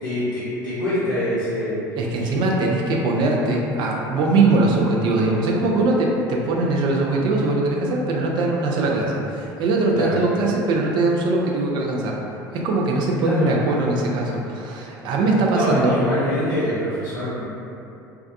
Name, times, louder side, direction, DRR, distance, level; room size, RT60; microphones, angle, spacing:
voice 1, 0.0-1.8 2.2-2.3 9.9-10.2 13.2-13.5 15.5-17.5, equal, 90° left, -11 dB, 0.6 m, -24 dB
voice 2, 2.0-12.2 12.5-16.0, right 2 dB, 50° right, -1 dB, 0.4 m, -21 dB
2.3 x 2.2 x 2.5 m, 2.7 s
figure-of-eight pair, 70°, 10 cm